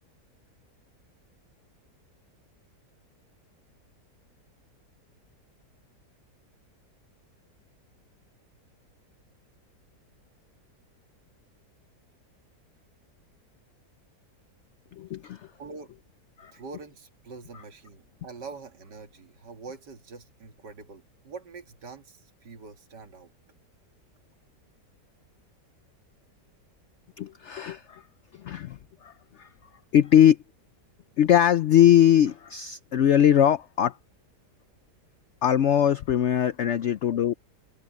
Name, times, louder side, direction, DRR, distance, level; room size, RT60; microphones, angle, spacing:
voice 1, 14.9-15.5 16.4-16.5 27.2-28.0 28.3-29.1 29.4-29.5 29.9-30.4 31.2-34.0 35.4-37.3, left 10 dB, 80° left, 0.6 m, -21 dB
voice 2, 15.6-16.0 16.5-23.3, right 4 dB, 80° right, 2.6 m, -44 dB
open air
omnidirectional pair, 1.8 m